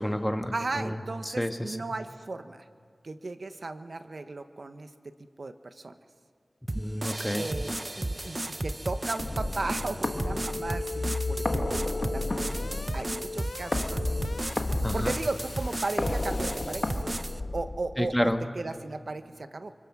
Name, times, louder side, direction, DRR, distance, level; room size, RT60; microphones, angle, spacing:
voice 1, 0.0-1.0 1.2-1.8 6.7-7.5 14.8-15.1 18.0-18.4, equal, 5° left, 6 dB, 1.6 m, -29 dB
voice 2, 0.5-2.7 3.0-4.9 5.4-6.0 7.3-7.7 8.0-12.7 12.9-14.3 14.9-17.2 17.5-19.7, right 3 dB, 70° right, 9 dB, 1.1 m, -36 dB
sound 1, 6.7-17.4, right 1 dB, 35° right, 0.7 m, -35 dB
sound 2, 9.2-18.2, left 2 dB, 50° left, 1.6 m, -33 dB
sound 3, 10.0-17.1, left 3 dB, 85° left, 0.7 m, -40 dB
29.5 x 25.0 x 6.1 m, 2.2 s
wide cardioid pair, 55°, 0 cm